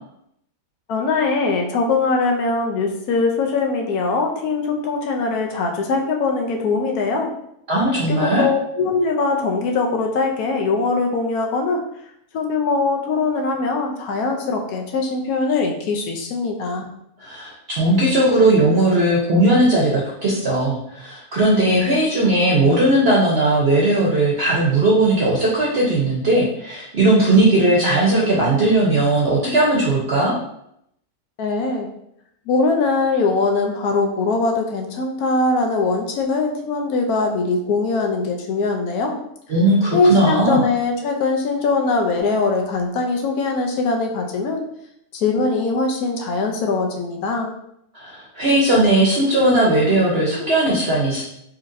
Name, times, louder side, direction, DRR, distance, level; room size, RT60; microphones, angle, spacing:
voice 1, 0.9-7.3 8.1-11.8 12.3-16.8 31.4-31.9 32.5-39.2 39.9-44.6 45.1-47.5, left 3 dB, 85° left, 2 dB, 1.2 m, -21 dB
voice 2, 7.7-8.5 17.2-30.3 39.5-40.6 47.9-51.2, right 1 dB, 50° right, -5 dB, 0.8 m, -17 dB
4.1 x 2.9 x 2.6 m, 0.74 s
omnidirectional pair, 1.5 m